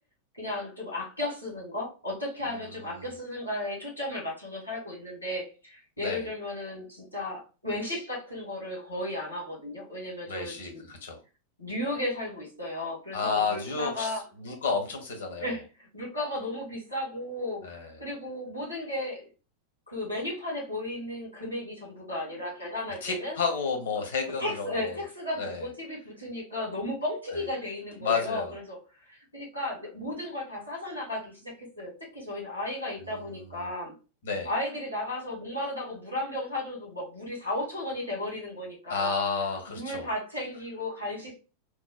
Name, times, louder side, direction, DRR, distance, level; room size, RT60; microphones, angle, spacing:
voice 1, 0.3-10.8 11.6-14.2 15.4-19.3 19.9-23.4 24.4-28.8 29.1-33.9 34.4-39.1 39.7-41.4, left 1 dB, 85° left, -3 dB, 1.7 m, -34 dB
voice 2, 10.3-11.2 13.1-14.1 14.4-15.5 17.6-18.0 23.0-25.0 25.4-25.7 28.0-28.5 33.0-33.7 34.2-34.5 38.9-40.1, left 5 dB, 60° left, 4 dB, 1.0 m, -31 dB
4.7 x 2.1 x 2.3 m, 0.32 s
figure-of-eight pair, 90°, 0 cm